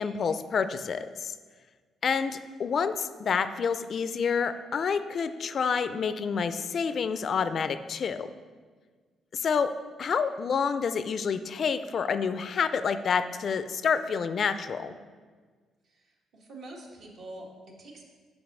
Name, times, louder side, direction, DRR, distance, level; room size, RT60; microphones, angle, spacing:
voice 1, 0.0-1.3 2.0-8.3 9.3-9.7 10.0-14.9, left 6 dB, 55° left, 12 dB, 0.4 m, -28 dB
voice 2, 15.8-18.0, right 1 dB, 70° right, -1 dB, 1.5 m, -46 dB
5.2 x 5.0 x 6.0 m, 1.5 s
cardioid pair, 90°, 0 cm